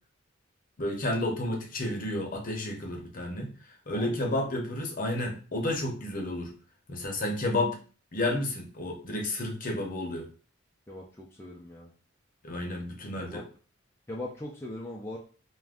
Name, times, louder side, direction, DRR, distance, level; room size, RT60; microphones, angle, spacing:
voice 1, 0.8-3.5 3.9-6.5 6.9-7.8 8.1-10.3 12.4-13.5, left 1 dB, 40° left, 2 dB, 0.7 m, -31 dB
voice 2, 3.9-4.4 10.9-11.9 13.2-13.5 14.1-15.2, left 1 dB, 10° left, -4 dB, 0.3 m, -40 dB
2.4 x 2.2 x 3.4 m, 0.37 s
head